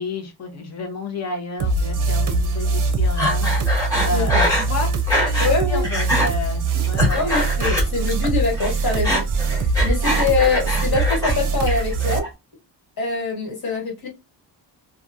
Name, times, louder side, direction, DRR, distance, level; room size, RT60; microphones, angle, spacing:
voice 1, 0.0-4.9 5.2-7.4, left 2 dB, 35° left, 0.8 m, -31 dB
sound 1, 1.6-12.2, right 3 dB, 45° right, 0.6 m, -22 dB
Breathing, 3.2-5.6 5.8-6.3 6.7-8.3 8.5-11.4 11.7-12.3, equal, 5° left, 1.2 m, -23 dB
voice 2, 5.4-5.8 7.1-12.2 13.0-14.1, left 4 dB, 55° left, 1.7 m, -24 dB
2.9 x 2.3 x 2.4 m
wide cardioid pair, 160°, 44 cm